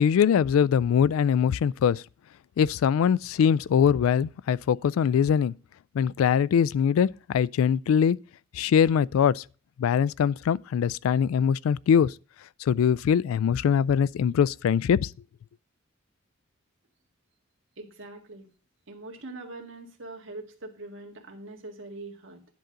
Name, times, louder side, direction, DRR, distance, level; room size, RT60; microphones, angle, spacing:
voice 1, 0.0-2.0 2.6-5.5 5.9-8.2 8.5-9.4 9.8-12.1 12.6-15.1, left 7 dB, 85° left, 0.3 m, -22 dB
voice 2, 17.8-18.5 18.9-22.5, right 2 dB, 65° right, 1.7 m, -42 dB
10.5 x 3.8 x 6.6 m
head